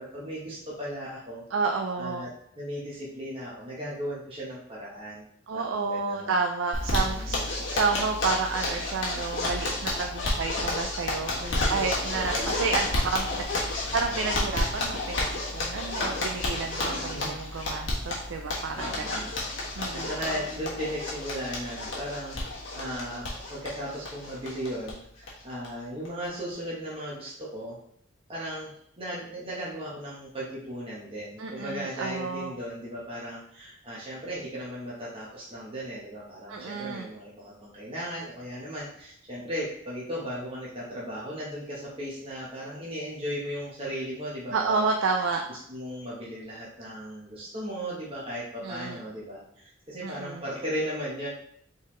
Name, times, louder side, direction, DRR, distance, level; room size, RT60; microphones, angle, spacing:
voice 1, 0.0-1.4 2.0-2.3 2.6-5.2 5.5-6.3 7.0-7.4 11.4-11.9 12.1-12.4 16.9-17.3 18.7-19.3 19.9-22.4 22.7-27.8 28.3-28.7 29.0-44.9 45.7-51.3, equal, 30° right, -7 dB, 1.0 m, -36 dB
voice 2, 1.5-2.3 5.5-7.4 7.7-11.3 11.7-19.2 19.8-20.1 31.4-32.5 36.5-37.1 44.5-45.4 48.6-49.0 50.0-50.4, right 4 dB, 75° right, 4 dB, 0.4 m, -30 dB
Zipper (clothing), 6.7-24.9 25.2-25.3 25.6-25.7 26.1-26.5, left 2 dB, 70° left, 1.4 m, -31 dB
sound 1, 15.9-20.7, equal, 25° left, 1.4 m, -42 dB
4.2 x 4.0 x 3.1 m, 0.70 s
head